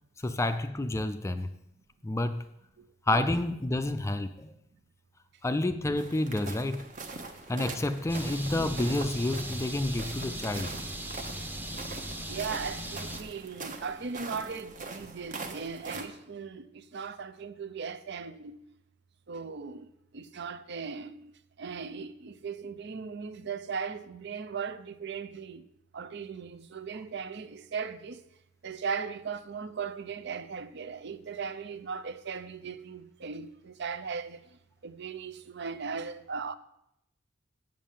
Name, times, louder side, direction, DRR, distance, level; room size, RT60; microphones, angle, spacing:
voice 1, 0.2-1.5 2.0-2.4 3.1-4.5 5.4-6.8 7.5-10.7, left 2 dB, 15° left, 0.4 m, -29 dB
sound 1, 6.0-16.1, right 3 dB, 40° right, 1.0 m, -43 dB
sound 2, 8.1-13.2, right 1 dB, 10° right, 0.8 m, -38 dB
voice 2, 12.3-18.6 19.3-19.9 20.1-21.2 21.6-25.6 25.9-28.2 28.6-34.4 34.8-36.6, right 5 dB, 60° right, 0.6 m, -38 dB
7.5 x 7.2 x 7.3 m
head